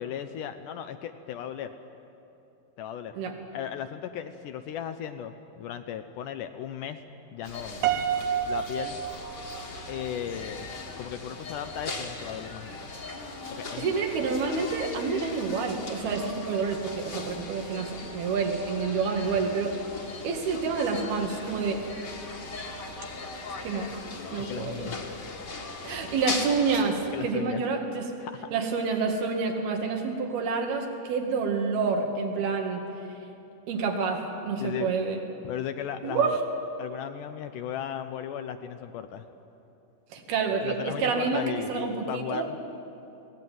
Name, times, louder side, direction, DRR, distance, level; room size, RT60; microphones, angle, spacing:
voice 1, 0.0-1.8 2.8-3.2 3.5-7.0 7.3-7.9 8.5-9.0 9.9-10.7 11.0-12.9 13.5-13.9 24.5-25.0 27.1-27.6 28.2-28.5 34.6-34.9 35.4-36.4 36.8-39.2 40.5-42.6, left 9 dB, 75° left, 9 dB, 2.0 m, -36 dB
sound 1, 7.4-26.8, left 3 dB, 35° left, 1.9 m, -39 dB
Piano, 7.8-10.1, right 8 dB, 70° right, 2.1 m, -29 dB
voice 2, 13.8-19.8 20.2-21.9 22.7-22.8 23.6-24.0 24.3-25.0 25.8-28.1 28.5-32.8 33.7-35.2 36.0-36.4 40.1-42.5, right 4 dB, 90° right, 2 dB, 4.0 m, -28 dB
22.5 x 18.0 x 9.3 m, 2.8 s
omnidirectional pair, 4.3 m